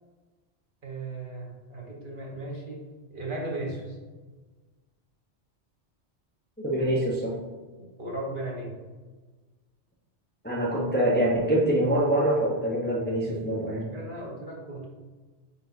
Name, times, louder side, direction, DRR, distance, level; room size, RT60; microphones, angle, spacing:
voice 1, 0.8-4.0 7.8-8.7 13.7-14.8, right 2 dB, 45° right, -3 dB, 1.4 m, -36 dB
voice 2, 6.6-7.3 10.4-13.9, right 1 dB, 10° left, -4 dB, 0.8 m, -25 dB
9.0 x 4.2 x 2.7 m, 1.3 s
omnidirectional pair, 1.2 m